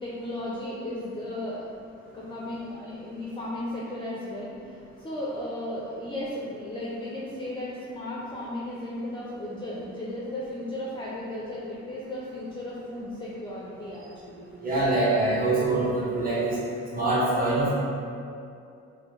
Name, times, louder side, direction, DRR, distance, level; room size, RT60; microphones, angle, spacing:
voice 1, 0.0-1.6 2.1-14.9, left 1 dB, 15° left, -6 dB, 0.5 m, -35 dB
voice 2, 14.6-16.6 16.9-17.7, right 2 dB, 30° right, -9 dB, 1.2 m, -24 dB
4.3 x 2.1 x 3.1 m, 2.5 s
cardioid pair, 90°, 30 cm